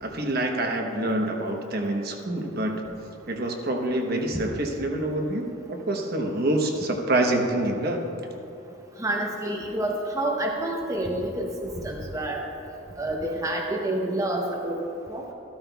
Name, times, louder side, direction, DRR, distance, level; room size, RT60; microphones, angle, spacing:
voice 1, 0.0-2.8 3.3-8.0, right 1 dB, 50° right, 2 dB, 0.9 m, -26 dB
voice 2, 9.0-12.4 13.0-14.8 15.1-15.3, right 1 dB, 15° right, -1 dB, 0.8 m, -28 dB
13.5 x 13.0 x 2.3 m, 2.8 s
head